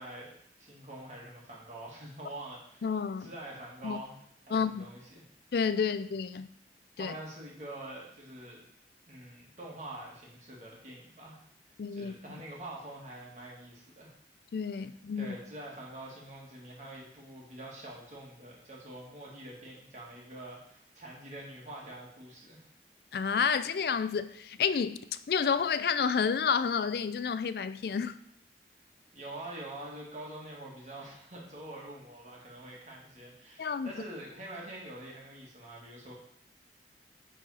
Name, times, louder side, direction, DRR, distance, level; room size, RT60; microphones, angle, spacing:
voice 1, 0.0-2.9 3.2-4.2 4.5-5.2 7.0-8.6 9.1-11.4 11.9-14.1 15.2-22.7 29.1-36.1, right 1 dB, 40° right, 1.9 m, -45 dB
voice 2, 2.8-3.3 3.8-4.0 4.5-4.9 5.5-6.5 7.0-7.1 11.8-12.1 14.5-15.4 23.1-28.2 33.6-33.9, left 6 dB, 60° left, 0.4 m, -30 dB
9.4 x 4.0 x 4.1 m
head